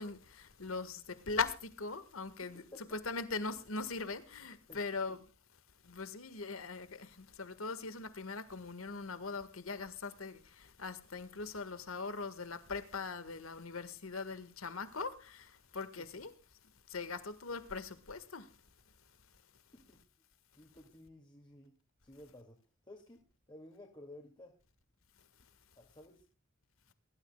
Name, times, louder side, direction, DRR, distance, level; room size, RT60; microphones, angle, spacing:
voice 1, 0.0-2.6 2.9-5.2 5.8-16.3 16.9-19.4 25.2-25.3, left 4 dB, 85° left, 1.7 m, -41 dB
voice 2, 4.7-5.2 19.7-20.0 20.6-22.6 22.9-24.6 25.8-26.3, left 1 dB, 25° left, 2.3 m, -55 dB
22.5 x 13.0 x 2.3 m
head